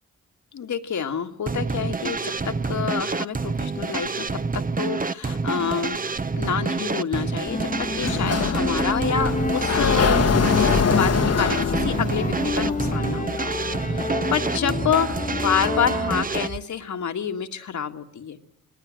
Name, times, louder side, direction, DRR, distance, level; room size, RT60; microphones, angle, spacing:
voice 1, 0.5-6.0 6.3-10.3 10.7-18.4, left 7 dB, 70° left, 6 dB, 1.9 m, -28 dB
sound 1, 1.5-16.6, right 4 dB, 30° right, 0.9 m, -28 dB
sound 2, 7.5-16.2, left 3 dB, 25° left, 1.3 m, -30 dB
Sliding door, 8.0-13.0, left 6 dB, 55° left, 1.2 m, -23 dB
27.5 x 19.0 x 7.7 m, 0.78 s
cardioid pair, 55°, 30 cm